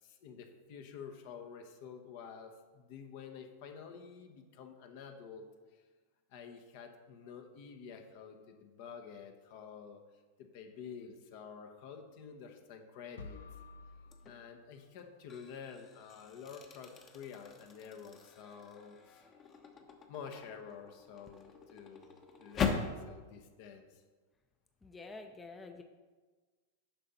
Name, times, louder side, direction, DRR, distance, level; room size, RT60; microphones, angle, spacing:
voice 1, 0.0-5.5 5.7-5.8 6.3-10.0 10.4-13.4 14.2-19.3 20.1-24.0, left 6 dB, 60° left, 6 dB, 1.0 m, -49 dB
sound 1, 13.2-15.2, left 4 dB, 80° left, 0.7 m, -52 dB
sound 2, 14.1-14.4 15.0-23.0, left 6 dB, 30° left, 1.0 m, -41 dB
voice 2, 24.8-25.8, left 3 dB, 15° left, 5 dB, 0.6 m, -48 dB
9.1 x 5.7 x 4.1 m, 1.4 s
hypercardioid pair, 110°, 0 cm